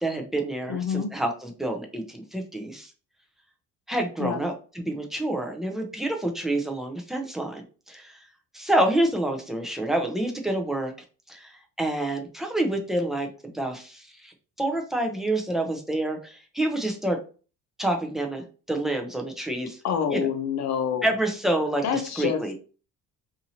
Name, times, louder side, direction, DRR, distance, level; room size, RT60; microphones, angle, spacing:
voice 1, 0.0-2.9 3.9-7.6 7.9-8.2 8.5-10.9 11.3-11.5 11.8-14.3 14.6-17.2 17.8-19.8 20.1-20.3 21.0-22.5, right 1 dB, ahead, 3 dB, 0.6 m, -28 dB
voice 2, 0.7-1.1 4.2-4.4 19.8-21.1 21.8-22.4, left 7 dB, 55° left, 6 dB, 0.8 m, -27 dB
2.7 x 2.6 x 2.8 m, 0.36 s
cardioid pair, 120°, 34 cm